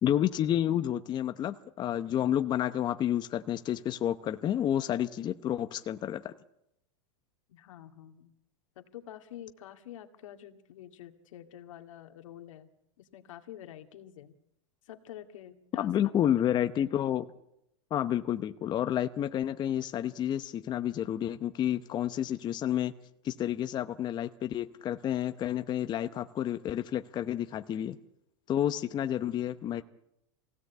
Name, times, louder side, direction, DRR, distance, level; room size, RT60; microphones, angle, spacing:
voice 1, 0.0-6.3 15.8-17.3 17.9-22.9 23.2-28.0 28.5-29.8, left 11 dB, 25° left, 10 dB, 0.8 m, -30 dB
voice 2, 7.5-8.3 8.8-12.7 13.0-14.3 14.9-15.9 16.9-17.0, left 11 dB, 80° left, 7 dB, 2.2 m, -48 dB
24.5 x 17.0 x 8.3 m, 0.82 s
supercardioid pair, 135°, 16 cm